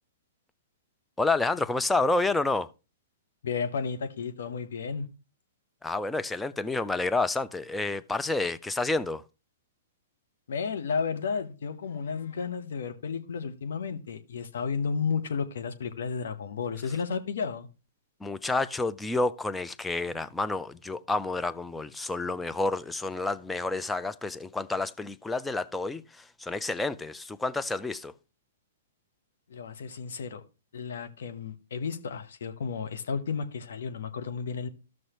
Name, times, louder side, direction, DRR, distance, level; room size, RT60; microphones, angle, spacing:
voice 1, 1.2-2.7 5.8-9.2 18.2-28.1, left 2 dB, 5° left, 0.4 m, -29 dB
voice 2, 3.4-5.1 10.5-17.7 29.5-30.4 30.7-34.7, left 5 dB, 70° left, 1.0 m, -32 dB
14.5 x 6.2 x 3.0 m
hypercardioid pair, 120°, 0 cm